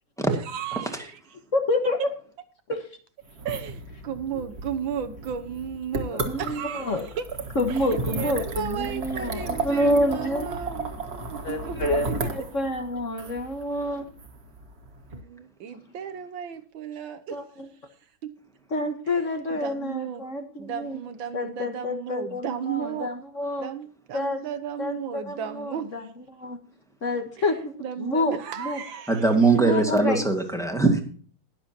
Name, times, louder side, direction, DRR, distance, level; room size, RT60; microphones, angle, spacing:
voice 1, 0.3-1.2 3.4-7.2 7.7-7.8 8.0-11.4 11.6-11.9 12.2-12.3 15.1-17.4 18.2-18.3 19.5-20.2 20.6-23.1 23.6-25.9 27.8-29.2, right 8 dB, 75° right, 9 dB, 1.7 m, -34 dB
voice 2, 1.5-2.0 2.7-2.9 6.1-7.1 7.5-10.5 11.4-14.1 15.7-15.8 17.3-17.7 18.7-21.0 21.3-23.7 24.1-24.4 24.8-26.6 27.0-28.8 29.6-30.2, left 1 dB, 40° left, 5 dB, 1.6 m, -28 dB
sound 1, 3.3-15.2, right 3 dB, 50° right, 2.1 m, -34 dB
voice 3, 29.1-31.0, right 3 dB, ahead, 3 dB, 1.8 m, -21 dB
21.0 x 7.4 x 2.8 m, 0.43 s
omnidirectional pair, 2.2 m